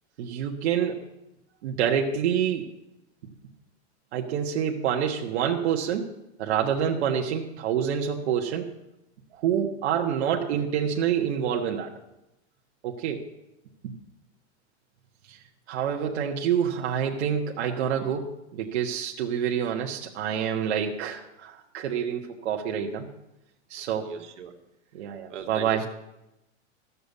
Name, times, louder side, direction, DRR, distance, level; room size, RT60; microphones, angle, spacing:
voice 1, 0.2-1.0 1.6-2.7 4.1-6.1 6.4-8.7 9.3-11.9 12.8-13.2 13.8-14.0 15.3-15.4 15.7-23.1 23.7-24.1 24.9-25.8, right 8 dB, 70° right, 0 dB, 1.4 m, -27 dB
voice 2, 23.8-24.5 25.3-25.9, right 8 dB, 85° right, 3 dB, 1.8 m, -39 dB
14.0 x 7.0 x 8.3 m, 0.90 s
supercardioid pair, 140°, 35 cm